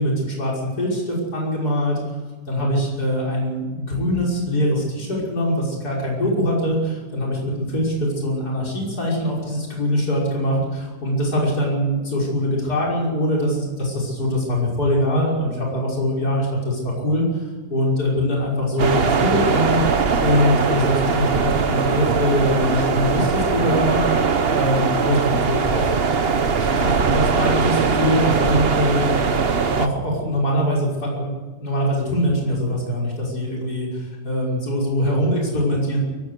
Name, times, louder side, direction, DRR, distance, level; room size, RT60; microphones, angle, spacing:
voice 1, 0.0-2.0 2.5-17.4 17.7-19.8 20.2-24.0 24.5-25.9 26.3-29.2 29.6-31.3 31.6-36.0, equal, 65° left, -3 dB, 6.4 m, -23 dB
sound 1, 18.8-29.9, right 5 dB, 40° right, 1.2 m, -20 dB
23.0 x 16.5 x 8.2 m, 1.4 s
omnidirectional pair, 1.8 m